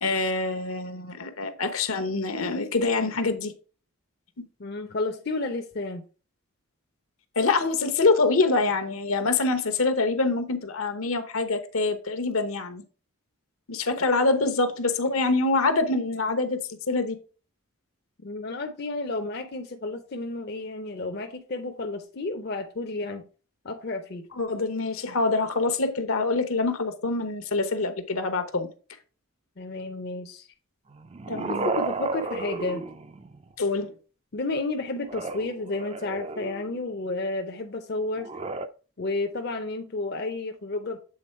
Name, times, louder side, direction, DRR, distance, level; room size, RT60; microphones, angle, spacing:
voice 1, 0.0-3.5 7.4-12.8 13.7-16.6 16.9-17.2 24.4-28.7 31.3-31.7 33.6-33.9, left 3 dB, 75° left, 0.9 m, -25 dB
voice 2, 4.6-6.0 18.2-23.2 23.6-24.2 29.6-30.5 31.4-32.8 34.3-38.3 39.0-41.0, left 2 dB, 45° left, 0.6 m, -31 dB
sound 1, 30.9-33.5 35.0-36.8 38.2-38.7, right 3 dB, 25° right, 0.4 m, -33 dB
7.7 x 3.8 x 4.4 m
head